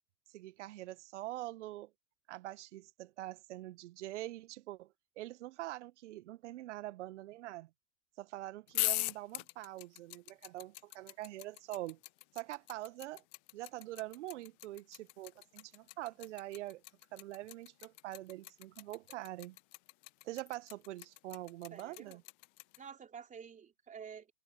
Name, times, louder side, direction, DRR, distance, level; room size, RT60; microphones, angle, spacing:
voice 1, 0.3-1.9 2.3-4.9 5.2-7.7 8.2-12.0 12.3-13.2 13.5-16.8 17.1-19.6 20.2-22.2, right 16 dB, 50° right, 1.5 m, -44 dB
sound 1, 8.7-22.8, left 29 dB, 10° left, 0.3 m, -40 dB
voice 2, 21.7-22.2 22.8-24.3, right 7 dB, 15° right, 3.6 m, -50 dB
figure-of-eight pair, 105°, 46 cm